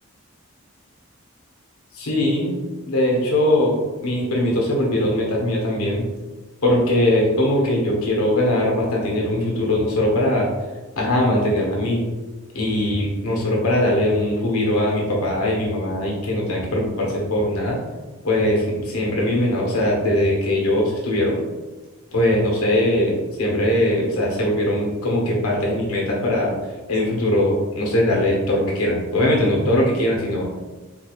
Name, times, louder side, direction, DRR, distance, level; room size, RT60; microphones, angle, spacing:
voice 1, 1.9-2.6 2.9-3.7 4.0-6.1 6.6-10.5 11.0-12.1 12.5-17.8 18.2-21.4 22.1-26.5 26.9-30.4, left 1 dB, 85° left, -2 dB, 1.0 m, -21 dB
4.0 x 2.3 x 3.0 m, 1.2 s
head